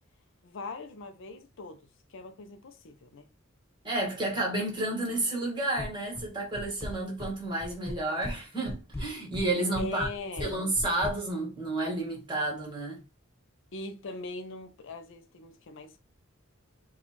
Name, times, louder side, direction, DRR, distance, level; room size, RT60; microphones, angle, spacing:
voice 1, 0.4-1.8 2.1-3.3 9.8-10.6 13.7-16.0, left 3 dB, 65° left, 0.5 m, -41 dB
voice 2, 3.8-10.1 10.4-13.0, right 2 dB, 25° right, 1.5 m, -31 dB
sound 1, 5.8-6.3 6.5-7.3 7.6-8.4 8.6-11.1, left 1 dB, 15° left, 0.4 m, -37 dB
4.2 x 2.4 x 2.9 m
head